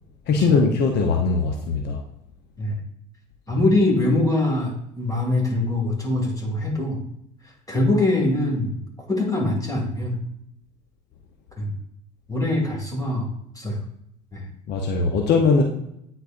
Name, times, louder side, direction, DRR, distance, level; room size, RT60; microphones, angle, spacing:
voice 1, 0.3-2.0 14.7-15.6, left 4 dB, 55° left, 2 dB, 0.9 m, -20 dB
voice 2, 3.5-7.0 7.7-8.8 9.1-10.2 11.6-11.7 12.3-13.3 13.6-13.8 14.3-14.4, left 2 dB, 15° left, 1 dB, 2.3 m, -23 dB
9.2 x 4.3 x 2.5 m, 0.76 s
hypercardioid pair, 75°, 21 cm